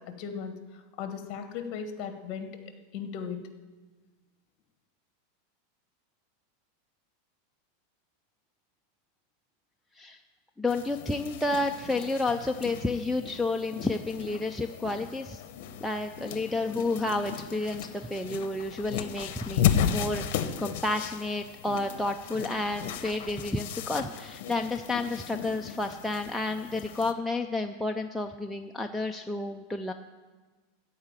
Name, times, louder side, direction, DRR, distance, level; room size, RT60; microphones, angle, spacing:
voice 1, 0.1-0.5 1.0-2.5 2.9-3.4, left 7 dB, 35° left, 7 dB, 1.3 m, -36 dB
voice 2, 10.6-15.4 15.8-29.9, left 2 dB, ahead, 2 dB, 0.3 m, -31 dB
sound 1, 10.7-27.1, left 9 dB, 55° left, 0.8 m, -35 dB
14.0 x 4.8 x 8.8 m, 1.3 s
supercardioid pair, 165°, 0 cm